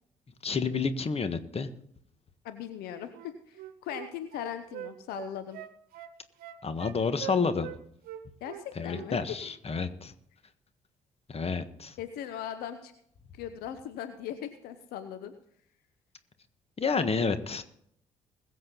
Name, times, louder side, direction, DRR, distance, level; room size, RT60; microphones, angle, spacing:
voice 1, 0.4-1.7 6.6-7.7 8.8-10.1 11.3-12.0 16.8-17.6, left 5 dB, 40° left, 10 dB, 1.5 m, -29 dB
voice 2, 2.4-5.6 8.4-9.4 12.0-12.9 13.3-15.3, left 10 dB, 70° left, 10 dB, 0.9 m, -39 dB
Wind instrument woodwind instrument, 3.1-7.8 8.0-9.1 9.4-9.6, right 13 dB, 65° right, 1.1 m, -43 dB
21.5 x 7.7 x 4.0 m, 0.68 s
hypercardioid pair, 45°, 17 cm